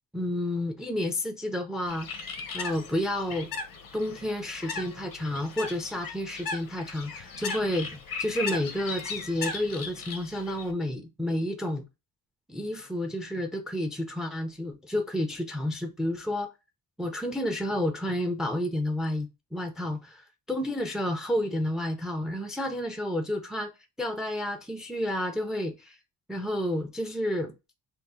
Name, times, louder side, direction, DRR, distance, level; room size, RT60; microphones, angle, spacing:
voice 1, 0.1-2.1 2.5-3.5 3.9-11.8 12.5-16.5 17.0-23.7 24.0-26.0 26.3-27.5, left 1 dB, ahead, 0.4 m, -30 dB
Bird, 1.9-10.7, left 5 dB, 70° left, 0.8 m, -37 dB
3.4 x 2.0 x 4.1 m
wide cardioid pair, 145°, 35 cm